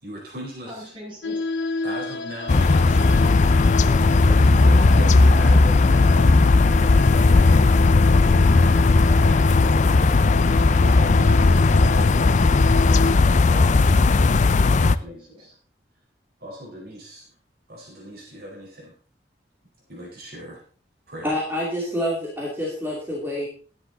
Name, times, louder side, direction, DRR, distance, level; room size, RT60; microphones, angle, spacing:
voice 1, 0.0-0.9 1.8-2.7 4.2-9.4 10.5-11.7 13.4-13.8 14.1-14.2 14.6-15.5 16.4-17.3 17.7-18.9 19.9-20.6 21.1-21.3, equal, 60° right, -2 dB, 4.5 m, -39 dB
voice 2, 0.6-1.4 2.5-5.2 15.0-15.5, left 1 dB, 30° right, -5 dB, 7.7 m, -42 dB
sound 1, 1.2-13.2, left 3 dB, 80° left, 0.8 m, -30 dB
sound 2, 2.5-15.0, left 3 dB, 45° left, 0.4 m, -16 dB
voice 3, 21.2-23.5, equal, 10° right, -5 dB, 2.8 m, -27 dB
12.5 x 10.0 x 4.0 m, 0.40 s
head